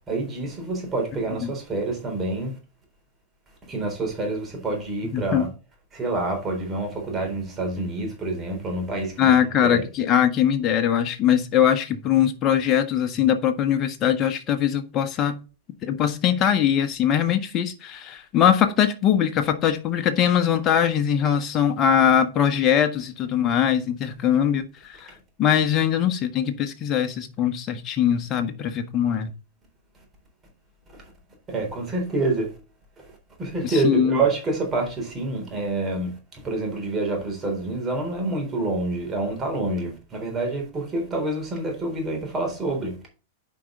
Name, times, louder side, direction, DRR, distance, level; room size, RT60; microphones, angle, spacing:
voice 1, 0.1-2.6 3.7-5.5 5.9-9.3 9.6-9.9 30.9-31.1 31.5-32.6 33.0-43.0, right 2 dB, 25° right, 3.8 m, -27 dB
voice 2, 5.1-5.4 9.2-15.4 15.8-25.1 25.4-29.3 33.6-34.2, left 9 dB, 35° left, 1.4 m, -21 dB
9.2 x 5.3 x 3.8 m
figure-of-eight pair, 95°, 0 cm